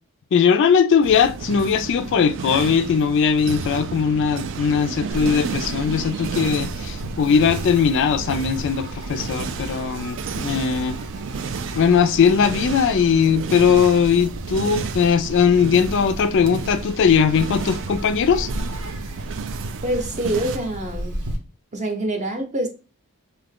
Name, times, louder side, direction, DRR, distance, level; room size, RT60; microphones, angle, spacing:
voice 1, 0.3-11.0 11.7-18.5, left 6 dB, 55° left, 0.3 m, -19 dB
sound 1, 1.0-20.6, right 5 dB, 55° right, 0.3 m, -32 dB
Insect, 5.1-21.4, equal, 80° right, 0.9 m, -35 dB
voice 2, 19.8-21.2 21.7-22.7, right 1 dB, 30° right, 0.7 m, -25 dB
2.7 x 2.4 x 3.5 m
head